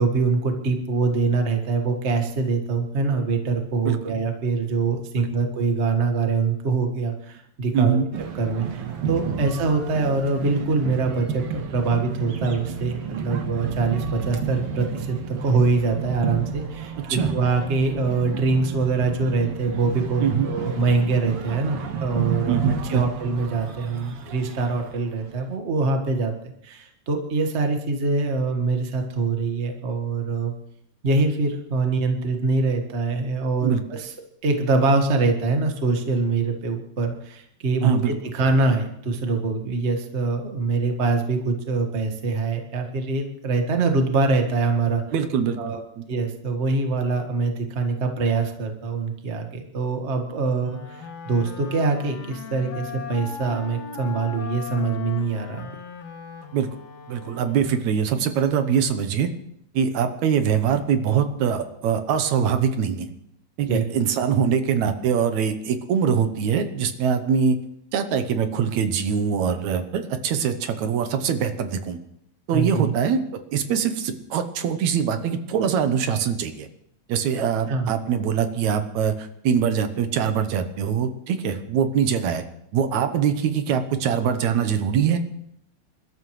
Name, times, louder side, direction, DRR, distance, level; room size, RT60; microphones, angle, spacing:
voice 1, 0.0-8.0 8.4-22.6 22.8-26.3 26.6-30.5 31.0-34.1 34.4-45.0 45.6-45.8 46.1-55.7 63.7-63.8 72.5-72.9 77.7-77.9, right 3 dB, 30° right, 4 dB, 1.4 m, -24 dB
voice 2, 7.7-8.1 17.1-17.3 20.2-20.5 22.5-23.0 33.6-33.8 37.8-38.1 45.1-46.0 56.5-56.7 57.1-59.3 59.7-63.1 63.6-67.6 67.9-72.0 72.5-76.7 77.1-82.4 82.7-85.2, right 7 dB, 80° right, 8 dB, 2.3 m, -23 dB
sound 1, 8.1-25.4, right 6 dB, 60° right, 2.0 m, -31 dB
Wind instrument woodwind instrument, 50.6-58.1, left 6 dB, 65° left, 2.3 m, -39 dB
27.0 x 13.0 x 3.2 m, 0.73 s
omnidirectional pair, 3.3 m